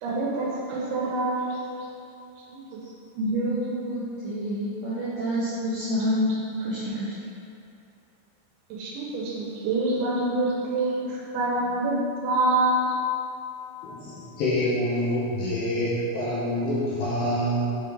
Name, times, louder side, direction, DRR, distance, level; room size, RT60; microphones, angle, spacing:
voice 1, 0.0-1.6 2.5-2.6 8.7-11.9 12.2-13.0, right 2 dB, 85° right, -5 dB, 3.4 m, -26 dB
voice 2, 3.2-7.1, equal, 70° right, -11 dB, 2.4 m, -28 dB
voice 3, 13.8-17.8, equal, 70° left, -8 dB, 2.5 m, -26 dB
7.5 x 5.1 x 3.4 m, 2.7 s
omnidirectional pair, 5.2 m